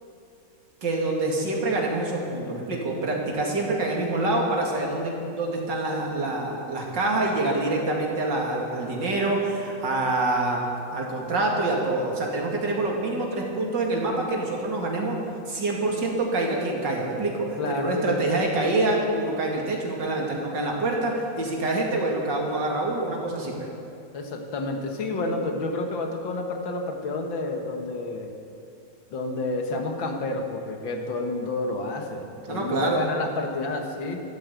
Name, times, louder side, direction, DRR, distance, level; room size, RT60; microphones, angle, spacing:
voice 1, 0.8-10.6 10.9-15.2 15.5-23.7 25.1-25.3 32.5-33.0, right 2 dB, 70° right, -1 dB, 3.0 m, -26 dB
voice 2, 17.6-18.2 24.1-28.3 29.1-34.2, left 2 dB, 85° left, 3 dB, 2.3 m, -30 dB
13.0 x 12.0 x 8.3 m, 2.5 s
omnidirectional pair, 2.0 m